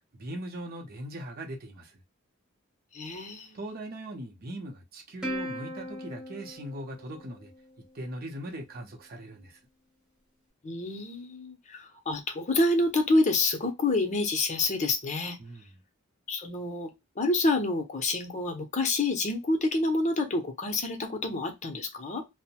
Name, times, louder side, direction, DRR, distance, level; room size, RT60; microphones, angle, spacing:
voice 1, 0.1-2.0 3.5-7.5 7.9-9.6 15.4-15.8, right 1 dB, 45° right, 0.6 m, -40 dB
voice 2, 2.9-3.6 10.6-15.4 16.3-22.2, left 2 dB, 35° left, 0.6 m, -28 dB
Plucked string instrument, 5.2-8.0, equal, 5° right, 0.7 m, -38 dB
2.6 x 2.0 x 2.8 m
head